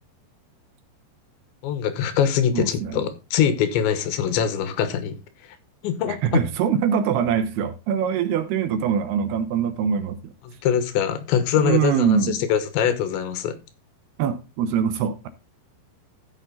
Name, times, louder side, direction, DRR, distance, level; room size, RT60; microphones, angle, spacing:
voice 1, 1.6-5.2 5.8-6.4 10.4-13.6, left 9 dB, 85° left, 3.5 m, -23 dB
voice 2, 2.5-3.1 6.1-10.3 11.6-12.4 14.2-15.3, right 8 dB, 75° right, 2.6 m, -23 dB
14.0 x 6.0 x 4.0 m
omnidirectional pair, 5.2 m